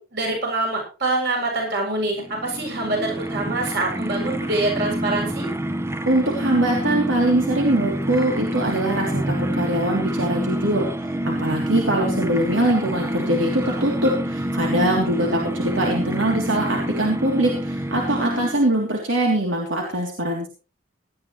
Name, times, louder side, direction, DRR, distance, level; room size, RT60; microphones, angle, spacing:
voice 1, 0.1-5.5, right 2 dB, 55° right, 0 dB, 7.7 m, -25 dB
sound 1, 2.2-18.8, right 1 dB, 15° right, 0.8 m, -27 dB
voice 2, 6.1-10.9 11.2-20.5, right 1 dB, 85° right, 0 dB, 3.2 m, -22 dB
18.5 x 12.5 x 3.2 m, 0.35 s
head